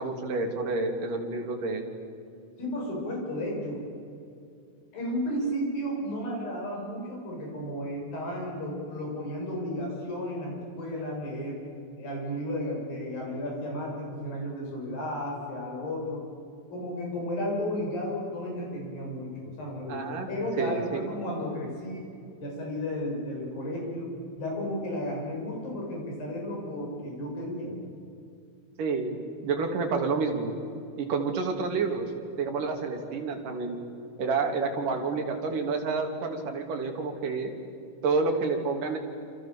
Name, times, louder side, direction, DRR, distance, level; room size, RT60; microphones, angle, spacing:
voice 1, 0.0-1.9 19.9-20.3 20.6-21.1 28.8-29.2 29.4-30.5 31.0-32.1 32.4-33.8 34.2-37.5 38.0-39.0, right 4 dB, 60° right, 3 dB, 4.3 m, -29 dB
voice 2, 2.6-3.8 4.9-11.6 12.0-16.2 16.7-22.1 22.4-24.1 24.4-27.7, equal, 70° left, -1 dB, 8.9 m, -33 dB
28.0 x 28.0 x 7.3 m, 2.5 s
omnidirectional pair, 4.3 m